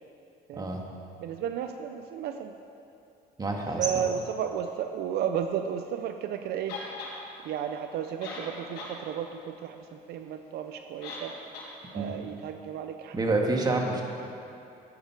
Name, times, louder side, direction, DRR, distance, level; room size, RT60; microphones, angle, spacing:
voice 1, 1.2-2.5 3.8-6.8 7.4-11.3 11.9-13.1 13.7-14.0, right 8 dB, 75° right, 7 dB, 0.6 m, -33 dB
voice 2, 3.4-4.0 11.9-12.1 13.1-14.0, right 2 dB, 25° right, 1 dB, 1.8 m, -28 dB
sound 1, 6.7-7.1 7.9-8.0 8.2-8.9 9.3-9.4 11.0-11.3 11.5-11.7, left 3 dB, 80° left, 3.4 m, -39 dB
13.5 x 10.5 x 4.8 m, 2.7 s
cardioid pair, 110°, 17 cm